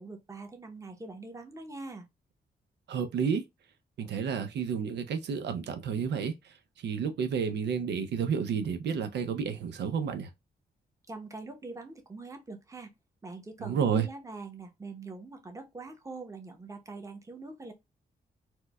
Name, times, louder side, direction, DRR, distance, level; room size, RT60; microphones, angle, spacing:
voice 1, 0.0-2.1 11.1-12.9 13.2-17.7, right 3 dB, 20° right, 0.8 m, -43 dB
voice 2, 2.9-3.4 4.0-6.5 6.8-10.3 13.6-14.1, right 6 dB, 85° right, 0.5 m, -30 dB
4.4 x 2.1 x 2.2 m
cardioid pair, 105°, 17 cm